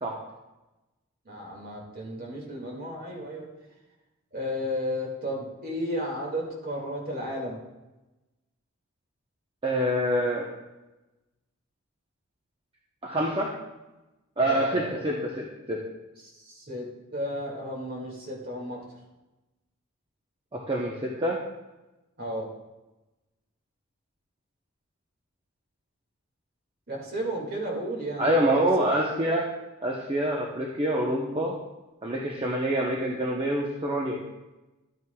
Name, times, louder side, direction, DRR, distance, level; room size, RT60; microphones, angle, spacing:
voice 1, 1.3-3.5 4.3-7.6 14.4-14.9 16.2-16.9 17.1-18.8 22.2-22.5 26.9-28.6, equal, 45° right, 0 dB, 2.2 m, -33 dB
voice 2, 9.6-10.4 13.0-13.5 14.4-15.8 20.5-21.4 28.2-29.4 29.8-31.5 32.0-34.2, right 1 dB, 25° right, -2 dB, 0.9 m, -26 dB
12.5 x 9.1 x 2.3 m, 1.0 s
head